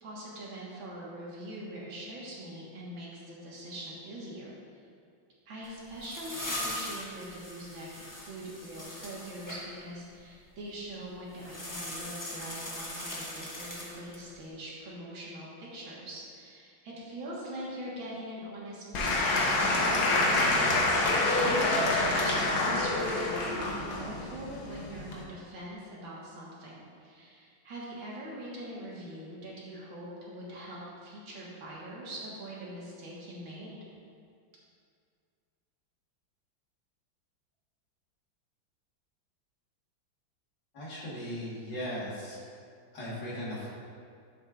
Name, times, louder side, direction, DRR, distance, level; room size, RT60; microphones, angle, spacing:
voice 1, 0.0-4.5 5.5-21.1 21.7-33.8, right 1 dB, 75° right, -6 dB, 2.3 m, -43 dB
sound 1, 5.6-9.6 11.3-14.3, left 1 dB, 15° left, 0.7 m, -40 dB
Applause / Crowd, 18.9-25.2, left 2 dB, 80° left, 1.9 m, -27 dB
voice 2, 40.7-42.4 42.9-43.7, equal, 60° left, -8 dB, 2.3 m, -37 dB
11.0 x 7.4 x 2.5 m, 2.2 s
omnidirectional pair, 2.2 m